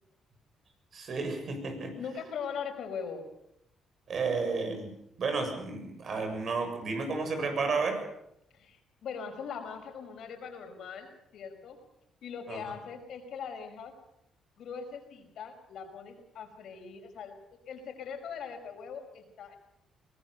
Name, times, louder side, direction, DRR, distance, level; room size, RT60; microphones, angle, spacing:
voice 1, 0.9-1.9 4.1-4.9 5.2-8.0 12.5-12.6, right 4 dB, 55° right, 5 dB, 7.2 m, -32 dB
voice 2, 2.0-3.3 8.5-11.8 12.2-13.9 14.6-17.3 17.7-19.6, left 6 dB, 70° left, 5 dB, 5.4 m, -41 dB
23.0 x 19.0 x 6.9 m, 0.79 s
cardioid pair, 90°, 0 cm